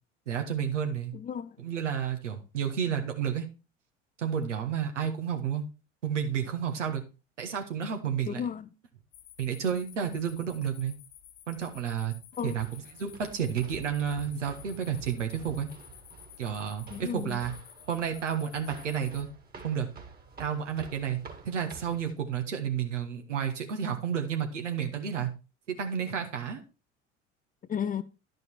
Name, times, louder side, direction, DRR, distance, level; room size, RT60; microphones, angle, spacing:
voice 1, 0.3-1.1 1.6-3.4 4.2-5.7 6.0-7.0 7.4-8.4 9.4-10.9 11.5-12.1 12.4-15.7 16.4-17.5 17.9-19.3 19.6-19.9 20.4-21.2 21.4-25.3 25.7-26.6, right 8 dB, 80° right, 1.5 m, -31 dB
voice 2, 1.1-1.6 8.3-8.7 12.4-12.6 16.9-17.4 27.7-28.0, left 8 dB, 25° left, 0.5 m, -33 dB
sound 1, 9.1-19.2, left 12 dB, 55° left, 1.8 m, -53 dB
sound 2, 12.3-22.1, right 5 dB, 25° right, 1.9 m, -49 dB
11.5 x 5.3 x 4.6 m
figure-of-eight pair, 65°, 36 cm